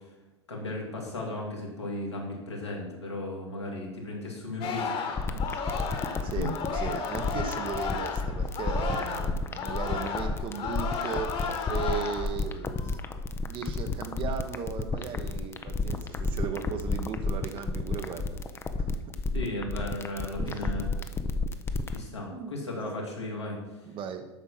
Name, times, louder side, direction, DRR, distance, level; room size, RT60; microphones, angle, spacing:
voice 1, 0.5-5.6 6.4-6.5 19.3-21.0 21.9-23.6, left 1 dB, 85° left, -2 dB, 2.4 m, -36 dB
Singing, 4.6-9.3 9.5-12.3 12.7-13.1, left 5 dB, 40° left, 1.6 m, -34 dB
sound 1, 5.2-22.0, left 3 dB, 15° left, 0.7 m, -31 dB
voice 2, 6.2-13.0 13.4-18.4 18.8-18.9 20.4-20.7 22.3-22.5 23.9-24.3, right 6 dB, 35° right, 7 dB, 1.1 m, -37 dB
8.4 x 5.8 x 6.0 m, 1.0 s
figure-of-eight pair, 85°, 14 cm